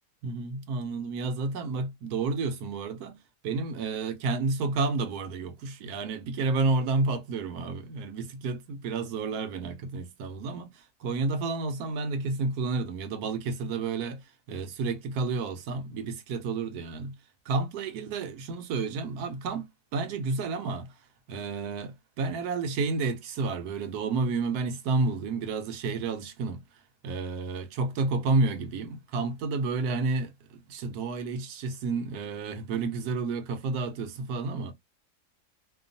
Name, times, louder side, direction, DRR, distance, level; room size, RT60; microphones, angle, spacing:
voice 1, 0.2-17.1 17.5-20.9 21.3-26.6 27.0-34.7, right 3 dB, 70° right, 1.1 m, -30 dB
2.9 x 2.2 x 2.6 m
omnidirectional pair, 1.8 m